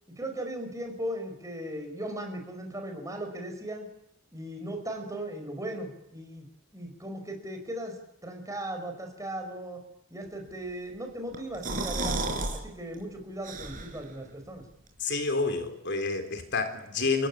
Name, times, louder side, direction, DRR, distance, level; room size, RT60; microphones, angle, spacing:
voice 1, 0.2-3.9 4.3-6.5 6.7-9.8 10.1-14.7, right 1 dB, 15° right, 4 dB, 5.4 m, -37 dB
sound 1, 11.3-12.6 12.9-13.0 13.4-14.1, right 2 dB, 40° right, 5.4 m, -32 dB
voice 2, 15.0-17.3, left 3 dB, 55° left, 7 dB, 3.7 m, -29 dB
30.0 x 16.5 x 10.0 m, 0.79 s
head